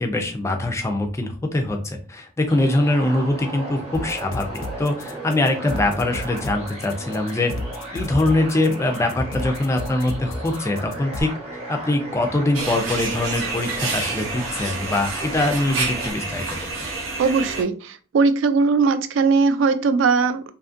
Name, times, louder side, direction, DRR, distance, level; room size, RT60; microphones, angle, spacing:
voice 1, 0.0-7.5 7.9-16.9, left 2 dB, 15° left, 4 dB, 0.3 m, -23 dB
sound 1, 2.5-16.1, right 1 dB, 30° right, 0.9 m, -35 dB
sound 2, 3.9-11.2, left 2 dB, 85° left, 0.4 m, -33 dB
sound 3, 12.5-17.6, right 3 dB, 90° right, 0.8 m, -28 dB
voice 2, 17.2-20.4, right 4 dB, 75° right, 11 dB, 0.3 m, -19 dB
2.5 x 2.4 x 2.5 m, 0.38 s
head